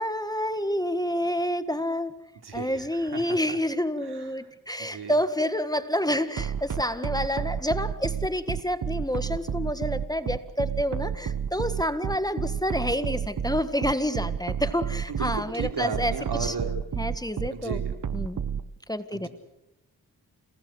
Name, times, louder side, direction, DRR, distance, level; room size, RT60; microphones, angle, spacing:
voice 1, 0.0-2.1 2.5-16.1 16.4-16.5 17.0-17.8 18.1-18.4 18.9-19.3, equal, 10° left, 11 dB, 1.7 m, -28 dB
voice 2, 2.4-3.6 4.0-4.3 4.8-5.2 15.1-16.7 17.5-18.0 19.1-19.3, right 5 dB, 75° right, 5 dB, 4.2 m, -35 dB
sound 1, 6.4-18.6, right 7 dB, 55° right, 1.0 m, -30 dB
29.5 x 19.0 x 8.0 m, 0.92 s
cardioid pair, 50°, 39 cm